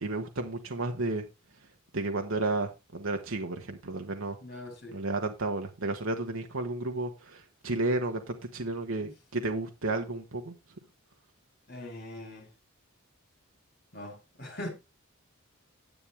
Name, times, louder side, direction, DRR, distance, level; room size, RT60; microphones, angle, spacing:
voice 1, 0.0-1.3 1.9-4.4 4.9-10.5, right 2 dB, 65° right, 1.3 m, -32 dB
voice 2, 4.4-5.0 9.0-9.1 11.7-12.5 13.9-14.7, left 1 dB, 45° left, 4.8 m, -41 dB
10.5 x 8.7 x 3.4 m
head